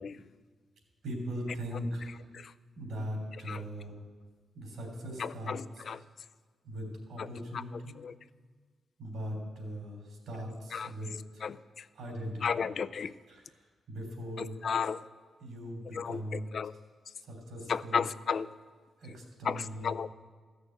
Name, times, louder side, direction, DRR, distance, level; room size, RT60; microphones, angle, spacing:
voice 1, 1.0-2.1 2.7-3.9 4.5-5.8 6.6-8.0 9.0-11.4 11.9-12.6 13.3-14.6 15.4-16.4 17.2-18.0 19.0-19.9, equal, 85° right, 3.3 m, -40 dB
voice 2, 5.2-6.0 7.2-7.3 7.5-7.6 8.0-8.1 10.7-10.9 11.4-11.9 12.4-13.1 14.4-15.0 15.9-16.7 17.7-18.5 19.4-20.1, left 6 dB, 60° left, 0.4 m, -34 dB
13.5 x 6.5 x 7.8 m
cardioid pair, 70°, 0 cm